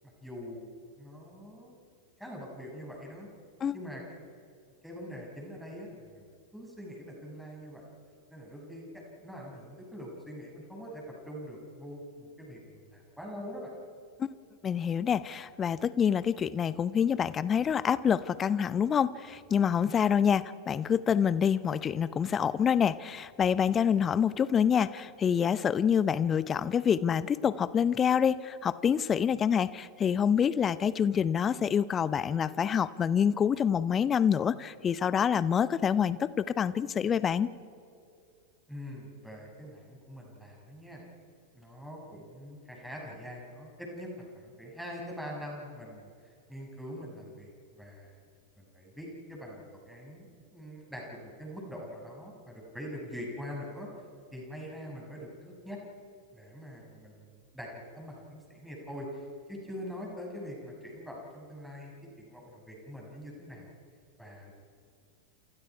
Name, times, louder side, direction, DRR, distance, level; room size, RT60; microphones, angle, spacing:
voice 1, 0.0-0.7 0.9-1.7 2.2-3.3 3.7-4.0 4.8-7.8 8.3-13.7 38.7-41.0 41.5-48.2 48.6-53.9 54.3-55.8 56.3-57.7 57.9-63.7 64.2-64.5, equal, ahead, -1 dB, 6.7 m, -44 dB
voice 2, 14.6-37.5, left 8 dB, 25° left, 17 dB, 0.8 m, -27 dB
29.0 x 28.0 x 4.8 m, 2.4 s
figure-of-eight pair, 90°, 0 cm